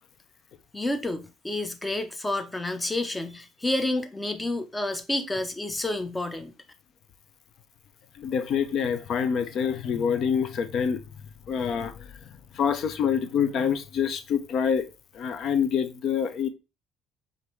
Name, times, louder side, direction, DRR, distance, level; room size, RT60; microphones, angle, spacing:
voice 1, 0.7-6.5, left 2 dB, 15° left, 0.7 m, -29 dB
voice 2, 8.2-11.0 11.5-12.1 12.5-14.9 15.1-16.5, left 7 dB, 65° left, 0.6 m, -26 dB
5.1 x 2.6 x 3.1 m
cardioid pair, 100°, 0 cm